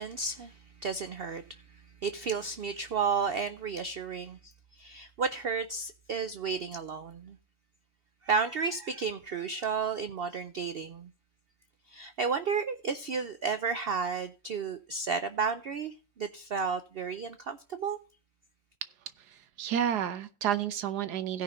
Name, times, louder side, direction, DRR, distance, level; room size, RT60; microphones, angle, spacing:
voice 1, 0.0-1.6 2.0-7.4 8.2-11.1 11.9-18.0, right 5 dB, 65° right, 0.6 m, -32 dB
voice 2, 19.2-21.4, right 9 dB, 85° right, 1.4 m, -31 dB
16.5 x 5.6 x 3.8 m
omnidirectional pair, 1.7 m